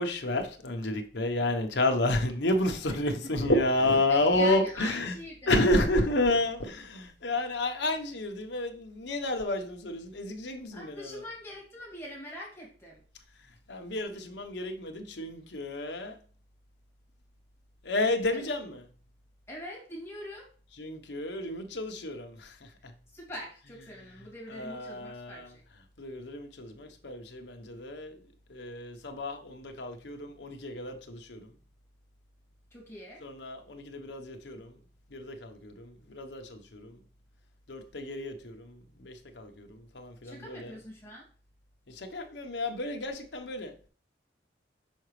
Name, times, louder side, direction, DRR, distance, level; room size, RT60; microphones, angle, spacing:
voice 1, 0.0-5.1 5.5-11.2 13.7-16.2 17.8-18.8 20.8-22.6 22.8-22.9 24.5-25.5 26.0-28.2 28.5-31.5 33.2-34.7 35.1-37.0 37.7-40.7 41.9-43.7, left 1 dB, 65° left, 0.9 m, -31 dB
voice 2, 2.9-3.3 4.1-5.8 10.7-13.0 18.3-18.5 19.5-20.5 23.1-25.6 32.7-33.3 40.2-41.2, equal, 15° left, 2.2 m, -43 dB
6.2 x 4.9 x 3.2 m
head